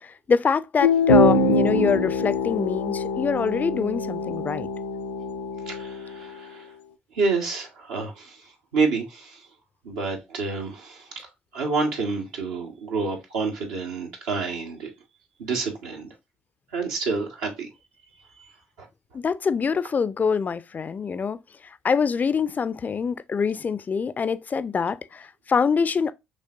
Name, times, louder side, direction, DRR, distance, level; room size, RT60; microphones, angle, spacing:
voice 1, 0.0-4.7 19.1-21.4 21.8-26.1, left 5 dB, 35° left, 0.4 m, -25 dB
sound 1, 0.8-6.2, left 2 dB, 85° left, 0.6 m, -23 dB
voice 2, 5.7-6.7 7.1-8.4 8.7-9.4 9.8-11.1 11.5-14.9 15.4-16.1 16.7-17.7 18.8-18.9, right 4 dB, 75° right, 1.4 m, -28 dB
5.3 x 3.2 x 2.5 m
hypercardioid pair, 50°, 5 cm